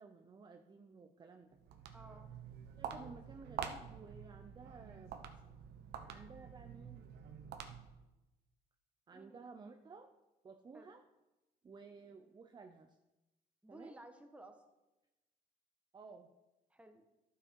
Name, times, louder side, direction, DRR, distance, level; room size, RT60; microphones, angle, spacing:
voice 1, 0.0-1.6 2.8-5.2 6.1-7.1 9.1-10.1 10.4-11.1 11.6-13.0 13.7-14.0 15.9-16.3, right 4 dB, 25° right, 6 dB, 0.6 m, -55 dB
Walk footsteps, 1.5-8.1, right 7 dB, 75° right, 1.0 m, -48 dB
voice 2, 1.9-2.3 9.1-9.4 10.7-10.9 13.6-14.6 16.7-17.1, right 1 dB, 5° right, 6 dB, 1.2 m, -55 dB
11.5 x 6.3 x 4.6 m, 1.0 s
cardioid pair, 110°, 17 cm